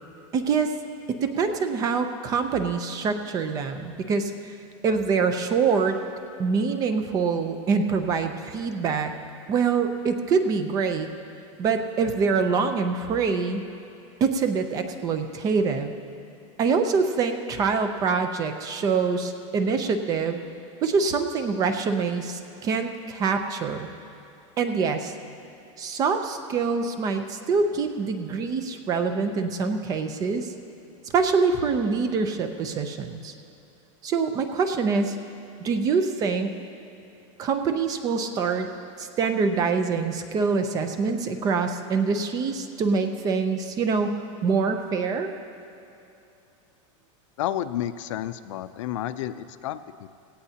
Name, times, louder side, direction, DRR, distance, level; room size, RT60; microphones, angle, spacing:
voice 1, 0.3-0.7 1.2-4.3 4.8-6.0 6.4-9.1 9.5-11.1 11.6-13.6 14.2-15.9 16.6-20.4 20.8-23.9 24.6-25.1 25.8-30.5 31.1-33.3 34.0-35.2 35.6-36.6 37.4-38.7 39.0-45.3, right 5 dB, 20° right, 7 dB, 0.6 m, -25 dB
voice 2, 47.4-50.1, left 12 dB, 70° left, 12 dB, 0.5 m, -31 dB
17.0 x 17.0 x 2.9 m, 2.9 s
supercardioid pair, 170°, 17 cm